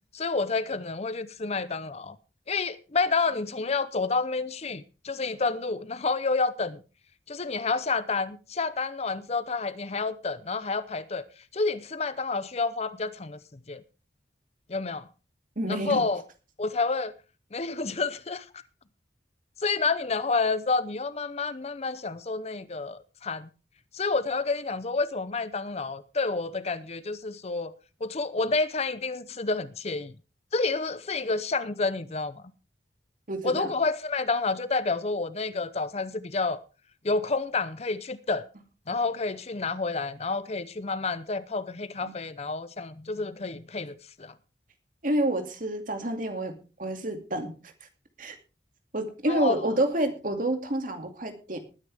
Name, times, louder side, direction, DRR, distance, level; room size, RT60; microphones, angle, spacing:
voice 1, 0.1-2.2 2.5-6.8 7.3-11.2 11.5-13.8 14.7-15.0 15.7-16.2 16.6-17.1 17.5-18.4 19.6-23.5 23.9-27.7 28.0-30.1 30.5-32.4 33.4-36.6 37.0-38.5 38.9-44.3 49.3-49.5, left 3 dB, 35° left, 0.7 m, -29 dB
voice 2, 15.6-16.1 33.3-33.7 42.0-42.1 45.0-47.6 48.2-48.4 48.9-51.6, right 1 dB, 50° right, 2.5 m, -28 dB
20.0 x 9.7 x 3.5 m
head